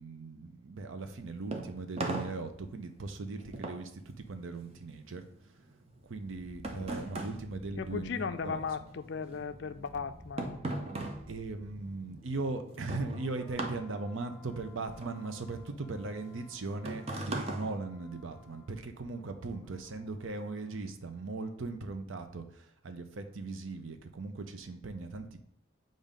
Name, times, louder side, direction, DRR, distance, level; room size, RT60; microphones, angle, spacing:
voice 1, 0.0-5.3 6.0-8.8 11.3-25.4, right 3 dB, 75° right, 7 dB, 0.6 m, -39 dB
sound 1, 1.0-8.7 8.9-18.6, right 2 dB, 30° right, 0.6 m, -40 dB
sound 2, 5.9-20.8 21.1-21.3, left 1 dB, ahead, 1.1 m, -56 dB
voice 2, 7.7-10.6, left 6 dB, 55° left, 11 dB, 0.4 m, -37 dB
7.2 x 2.6 x 5.0 m, 0.70 s
head